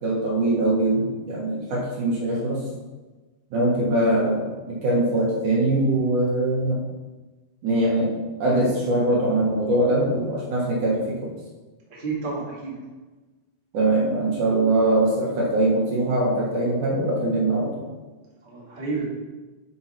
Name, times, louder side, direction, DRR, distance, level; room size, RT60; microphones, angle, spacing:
voice 1, 0.0-2.6 3.5-6.8 7.6-8.1 8.4-11.3 13.7-17.8, right 1 dB, 60° right, -4 dB, 2.5 m, -22 dB
voice 2, 11.9-12.8 18.4-19.0, right 4 dB, 30° right, -5 dB, 0.9 m, -30 dB
10.0 x 5.6 x 4.4 m, 1.2 s
omnidirectional pair, 4.8 m